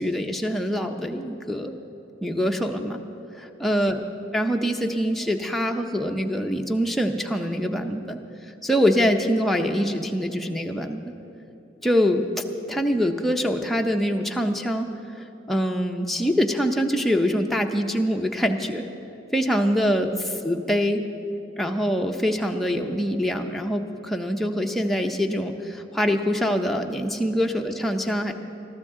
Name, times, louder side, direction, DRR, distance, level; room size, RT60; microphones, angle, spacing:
voice 1, 0.0-1.7 2.2-3.0 3.4-4.0 4.3-8.2 8.6-11.1 11.8-14.9 15.2-18.8 19.3-21.0 21.6-28.3, equal, ahead, 2 dB, 0.6 m, -24 dB
21.0 x 13.5 x 3.7 m, 3.0 s
head